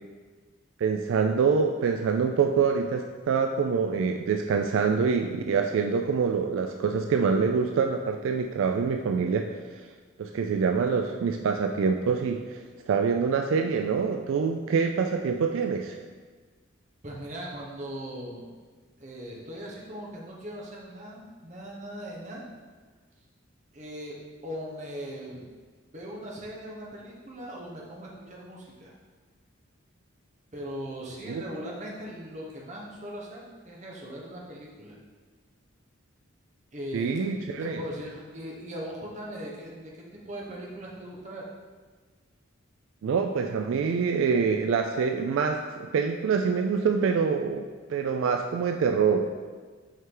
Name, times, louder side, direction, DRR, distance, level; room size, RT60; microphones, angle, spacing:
voice 1, 0.8-9.9 10.2-16.0 31.3-31.4 36.9-37.8 43.0-49.3, right 5 dB, 70° right, 4 dB, 0.3 m, -26 dB
voice 2, 17.0-18.5 19.0-22.5 23.7-24.2 24.4-25.4 25.9-28.9 30.5-35.0 36.7-37.3 37.6-41.4, equal, 35° right, -3 dB, 1.0 m, -39 dB
5.5 x 4.6 x 3.8 m, 1.4 s
head